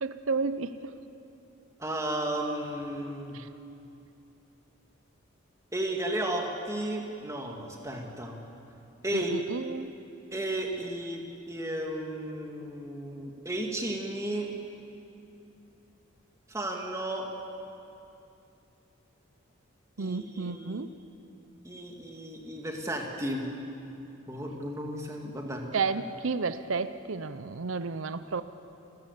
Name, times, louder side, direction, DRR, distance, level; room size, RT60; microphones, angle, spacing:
voice 1, 0.0-0.9 3.3-3.5 9.1-9.9 20.0-20.9 25.7-28.4, right 4 dB, 85° right, 12 dB, 0.7 m, -32 dB
voice 2, 1.8-3.4 5.7-8.4 9.0-9.4 10.3-14.5 16.5-17.3 20.0-20.8 21.6-23.4 24.3-25.6, right 1 dB, 15° right, 1 dB, 2.3 m, -34 dB
29.5 x 14.0 x 8.3 m, 2.7 s
head